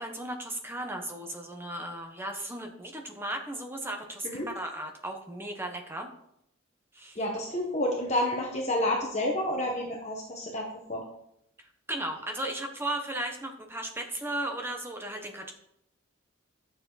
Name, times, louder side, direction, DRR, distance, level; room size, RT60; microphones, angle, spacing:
voice 1, 0.0-6.1 6.9-7.2 11.9-15.5, right 1 dB, 10° right, 3 dB, 1.1 m, -36 dB
voice 2, 7.2-11.0, left 1 dB, 35° left, -1 dB, 1.3 m, -29 dB
10.5 x 6.9 x 4.2 m, 0.77 s
head